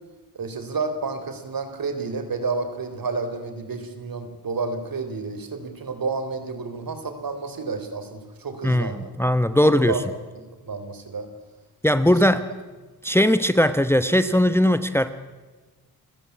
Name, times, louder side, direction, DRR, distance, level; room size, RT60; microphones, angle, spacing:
voice 1, 0.3-9.1 9.6-10.1 10.6-11.3 12.0-12.4, right 4 dB, 60° right, 8 dB, 3.8 m, -30 dB
voice 2, 8.6-9.9 11.8-12.4 13.0-15.1, left 1 dB, 5° left, 12 dB, 1.0 m, -19 dB
29.0 x 16.0 x 8.4 m, 1.3 s
cardioid pair, 65°, 39 cm